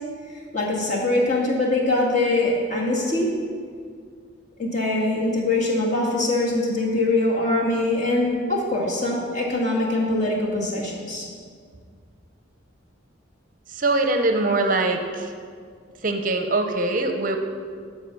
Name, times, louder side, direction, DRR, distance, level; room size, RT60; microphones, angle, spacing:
voice 1, 0.5-3.3 4.6-11.3, left 2 dB, 35° left, -4 dB, 2.0 m, -23 dB
voice 2, 13.7-15.3 16.0-17.4, right 2 dB, 40° right, 5 dB, 0.6 m, -22 dB
12.0 x 4.6 x 6.9 m, 2.1 s
head